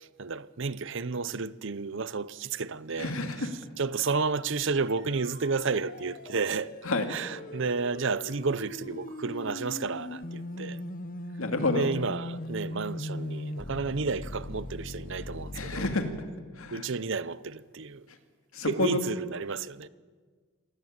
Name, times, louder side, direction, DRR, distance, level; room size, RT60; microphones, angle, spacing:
voice 1, 0.2-3.1 3.8-6.7 7.1-10.8 11.7-15.8 16.7-18.0 18.7-19.9, right 4 dB, 55° right, 0.7 m, -31 dB
voice 2, 2.9-3.5 6.8-7.2 11.4-11.9 15.5-16.1 16.5-16.9 18.1-18.2 18.5-19.0, left 2 dB, 70° left, 2.4 m, -29 dB
sound 1, 4.8-15.9, left 1 dB, 40° left, 0.9 m, -40 dB
27.0 x 17.0 x 8.8 m
head